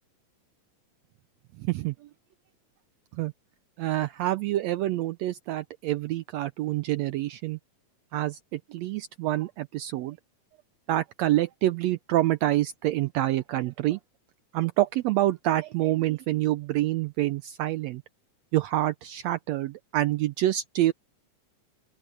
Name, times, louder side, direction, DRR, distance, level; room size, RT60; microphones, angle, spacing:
voice 1, 1.6-1.9 3.1-3.3 3.8-7.6 8.1-10.2 10.9-14.0 14.5-18.0 18.5-20.9, right 15 dB, 90° right, 1.5 m, -27 dB
open air
omnidirectional pair, 3.6 m